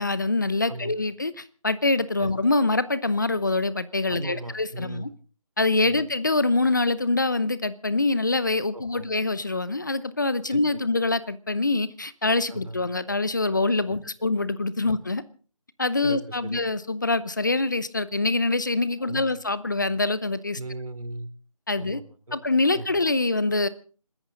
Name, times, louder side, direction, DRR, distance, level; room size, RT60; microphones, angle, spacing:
voice 1, 0.0-5.1 5.6-15.2 15.8-20.6 21.7-22.0 22.3-23.7, left 2 dB, 35° left, 0.8 m, -25 dB
voice 2, 4.1-5.1 5.8-6.0 8.7-9.1 10.5-10.6 12.5-12.8 16.0-16.6 19.0-19.3 20.6-21.3 21.8-22.4 22.7-22.8, right 2 dB, 90° right, 3.2 m, -37 dB
26.0 x 14.0 x 3.9 m
figure-of-eight pair, 175°, 18 cm